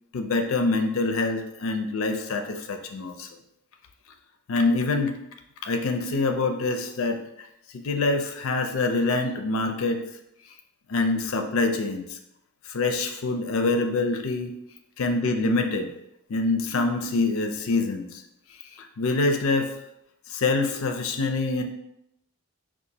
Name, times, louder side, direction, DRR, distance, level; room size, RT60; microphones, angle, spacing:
voice 1, 0.1-3.3 4.5-5.2 5.6-7.2 7.7-10.0 10.9-12.2 12.7-14.5 15.0-15.9 16.3-18.2 18.8-19.7 20.3-21.6, left 3 dB, 65° left, 6 dB, 0.4 m, -25 dB
4.7 x 2.4 x 2.7 m, 0.82 s
head